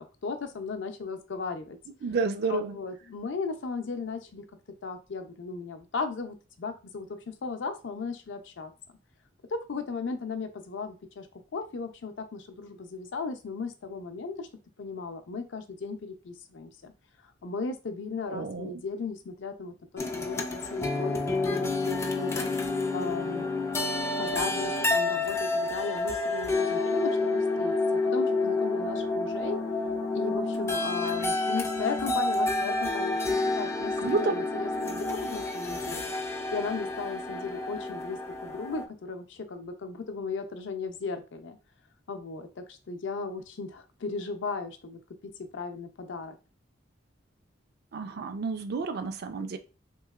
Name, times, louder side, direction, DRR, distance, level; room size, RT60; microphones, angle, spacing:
voice 1, 0.0-1.8 2.5-4.4 4.8-8.7 9.5-11.3 11.5-14.5 14.8-16.9 17.4-22.5 22.9-23.5 24.2-29.6 30.1-36.1 36.5-41.6 42.1-46.3, left 4 dB, 70° left, 7 dB, 0.5 m, -36 dB
voice 2, 2.0-2.7 18.3-18.7 34.0-34.3 47.9-49.6, right 4 dB, 55° right, 9 dB, 0.4 m, -30 dB
sound 1, 20.0-38.8, left 2 dB, 15° left, 0.3 m, -29 dB
3.0 x 2.8 x 2.3 m, 0.32 s
head